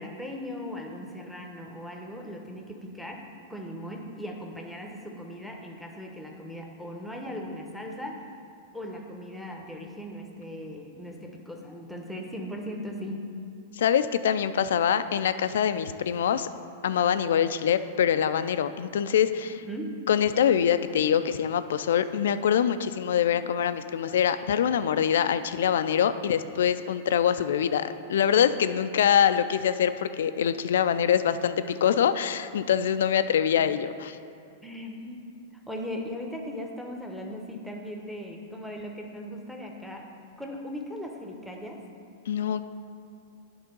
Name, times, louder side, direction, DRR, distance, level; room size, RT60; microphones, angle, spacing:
voice 1, 0.0-8.3 8.7-13.3 19.6-20.1 34.6-40.1 40.4-41.8, equal, ahead, 1 dB, 0.9 m, -38 dB
voice 2, 13.8-16.5 16.8-19.5 20.1-34.2 42.3-42.6, left 8 dB, 75° left, 12 dB, 0.3 m, -24 dB
9.7 x 3.7 x 5.3 m, 2.4 s
hypercardioid pair, 115°, 0 cm